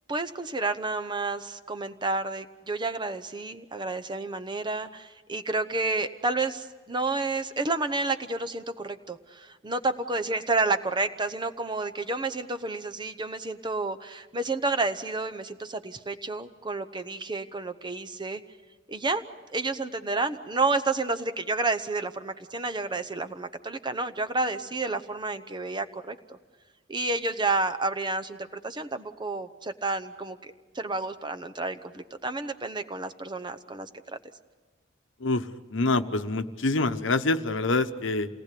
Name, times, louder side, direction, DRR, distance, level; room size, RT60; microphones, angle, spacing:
voice 1, 0.1-18.4 18.9-19.2 19.5-26.4 26.9-33.9, right 3 dB, 25° right, 9 dB, 0.9 m, -30 dB
voice 2, 35.2-38.3, left 2 dB, 70° left, 9 dB, 1.0 m, -26 dB
28.0 x 19.0 x 8.5 m, 1.3 s
head